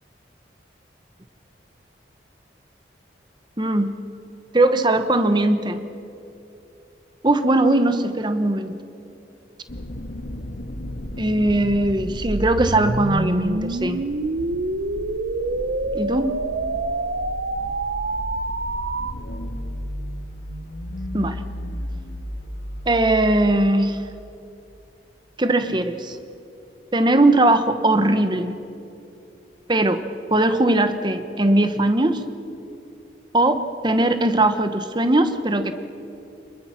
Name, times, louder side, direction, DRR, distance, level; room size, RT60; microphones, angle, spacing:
voice 1, 3.6-3.9 4.5-5.8 7.2-8.8 11.2-14.0 15.9-16.3 21.1-21.4 22.9-24.0 25.4-26.2 26.9-28.5 29.7-30.0 30.3-32.2 33.3-35.7, right 2 dB, 25° right, 9 dB, 1.0 m, -19 dB
sound 1, 9.7-23.6, equal, 75° left, 1.7 m, -34 dB
sound 2, 12.2-19.1, right 2 dB, 65° right, 0.8 m, -26 dB
26.0 x 22.0 x 6.0 m, 2.8 s
head